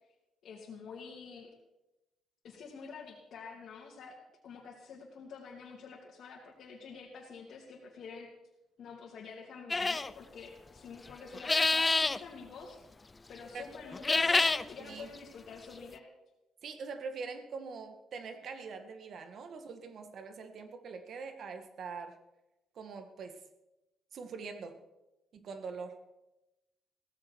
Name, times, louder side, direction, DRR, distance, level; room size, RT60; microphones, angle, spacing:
voice 1, 0.4-1.5 2.4-4.2 4.4-8.3 8.8-12.8 13.3-16.1, left 5 dB, 65° left, -4 dB, 2.8 m, -48 dB
sound 1, 9.7-10.1 11.3-12.2 13.9-14.6, left 3 dB, 25° left, 0.5 m, -27 dB
voice 2, 14.8-15.1 16.6-22.2 22.7-23.4 24.1-24.8 25.3-26.0, right 5 dB, 60° right, 8 dB, 1.7 m, -43 dB
16.5 x 15.0 x 4.7 m, 0.98 s
cardioid pair, 90°, 0 cm